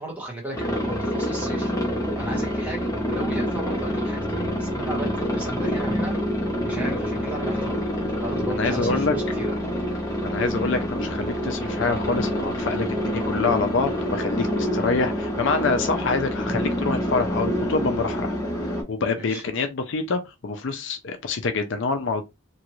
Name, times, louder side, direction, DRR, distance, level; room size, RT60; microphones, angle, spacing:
voice 1, 0.0-1.7 2.2-6.1 6.6-7.8 8.2-9.5 19.1-19.4, right 1 dB, 5° right, 1.1 m, -35 dB
Aircraft, 0.5-18.8, equal, 15° left, 0.8 m, -27 dB
voice 2, 8.5-9.1 10.2-18.4 18.9-22.2, left 4 dB, 60° left, 0.5 m, -26 dB
3.0 x 2.5 x 3.0 m
head